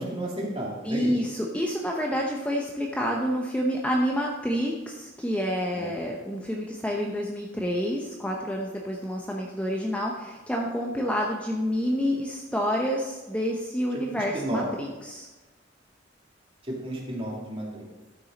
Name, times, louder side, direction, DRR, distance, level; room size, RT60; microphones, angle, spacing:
voice 1, 0.0-1.1 5.7-5.9 14.3-14.6 16.7-17.8, right 1 dB, 30° right, -3 dB, 2.4 m, -32 dB
voice 2, 0.8-15.3, equal, 5° left, -1 dB, 0.8 m, -28 dB
12.5 x 6.3 x 4.1 m, 1.2 s
head